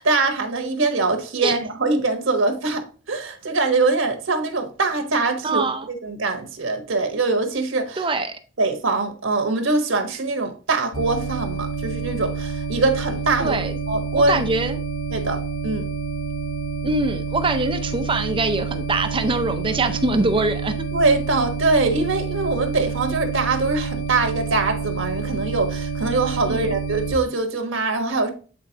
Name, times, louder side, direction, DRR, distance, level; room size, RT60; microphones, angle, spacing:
voice 1, 0.0-5.6 6.0-8.1 8.6-13.6 13.9-14.4 15.1-15.9 20.9-28.3, right 3 dB, 80° right, 1.3 m, -23 dB
voice 2, 5.4-5.9 8.0-8.4 13.4-13.7 14.1-14.8 16.8-20.8 26.5-26.7, right 2 dB, 25° right, 0.6 m, -23 dB
sound 1, 10.9-27.1, right 4 dB, 85° left, 3.8 m, -28 dB
8.5 x 4.3 x 2.9 m
head